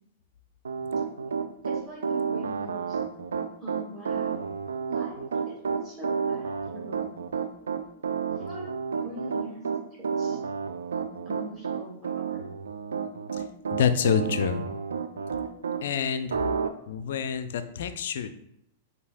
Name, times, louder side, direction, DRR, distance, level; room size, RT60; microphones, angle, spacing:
Piano, 0.6-15.8 16.3-16.7, right 6 dB, 75° right, 0.3 m, -30 dB
voice 1, 1.6-3.0 3.6-4.6 4.9-7.1 8.4-8.7 9.0-9.6 10.0-10.4 11.3-12.5, right 1 dB, 15° right, -6 dB, 1.8 m, -42 dB
voice 2, 13.7-14.7 15.8-16.4 16.9-18.3, left 7 dB, 60° left, 10 dB, 0.4 m, -27 dB
7.9 x 2.7 x 2.3 m, 0.78 s
figure-of-eight pair, 100°, 0 cm